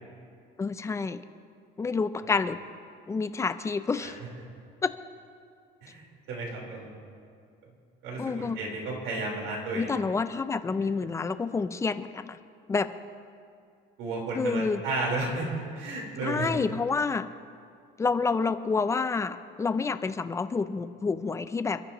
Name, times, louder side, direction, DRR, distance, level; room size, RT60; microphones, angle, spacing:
voice 1, 0.6-1.2 1.8-2.6 3.1-4.1 4.8-4.9 8.2-8.6 9.7-12.4 12.7-12.9 14.4-14.8 16.2-17.3 18.0-21.8, left 4 dB, 15° left, 12 dB, 0.4 m, -28 dB
voice 2, 6.3-6.9 8.0-9.9 10.8-10.9 14.0-15.5 15.7-16.5, right 2 dB, 85° right, -2 dB, 4.2 m, -33 dB
28.0 x 12.0 x 3.0 m, 2.3 s
cardioid pair, 160°, 20 cm